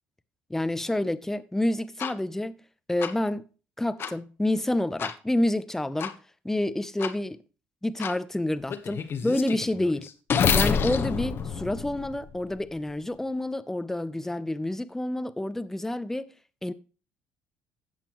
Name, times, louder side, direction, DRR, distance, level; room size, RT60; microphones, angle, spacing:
voice 1, 0.5-2.6 2.9-3.4 3.8-6.2 6.4-7.4 7.8-10.1 10.5-16.3 16.6-16.7, left 1 dB, 5° left, 0.8 m, -28 dB
sound 1, 2.0-2.1 3.0-3.1 4.0-4.1 5.0-5.1 6.0-6.1 7.0-7.1 8.0-8.1 8.7-12.6, left 6 dB, 45° left, 1.2 m, -28 dB
16.0 x 5.7 x 3.1 m
supercardioid pair, 80°, 5 cm